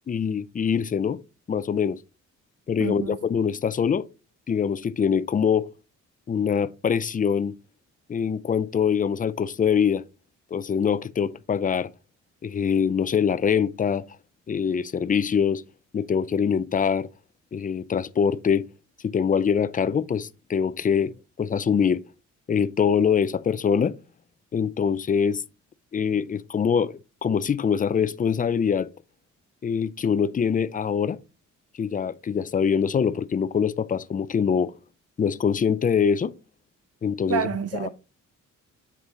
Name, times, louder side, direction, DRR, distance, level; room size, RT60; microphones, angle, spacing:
voice 1, 0.1-1.2 1.5-2.0 2.7-4.1 4.5-5.7 6.3-7.6 8.1-10.0 10.5-11.9 12.4-14.0 14.5-15.6 15.9-17.1 17.5-18.7 19.0-22.0 22.5-23.9 24.5-25.4 25.9-28.9 29.6-31.2 31.8-34.7 35.2-36.3 37.0-37.5 37.7-37.9, left 7 dB, 25° left, 0.5 m, -24 dB
voice 2, 2.8-3.2 37.3-37.9, right 7 dB, 55° right, 1.1 m, -28 dB
8.2 x 4.8 x 3.8 m
cardioid pair, 90°, 30 cm